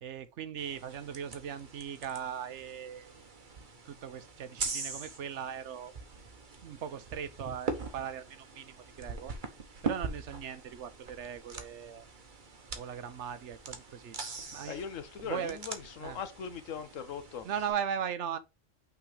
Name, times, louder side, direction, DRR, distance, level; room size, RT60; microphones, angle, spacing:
voice 1, 0.0-3.6 3.9-5.9 6.6-9.3 9.8-12.1 12.8-14.2 14.5-14.8 15.2-15.6 16.0-16.2 17.4-18.4, right 8 dB, 65° right, 1.0 m, -39 dB
sound 1, 0.6-17.7, right 4 dB, 40° right, 1.2 m, -42 dB
voice 2, 14.6-17.5, left 7 dB, 80° left, 1.3 m, -40 dB
5.8 x 3.9 x 5.0 m
omnidirectional pair, 1.3 m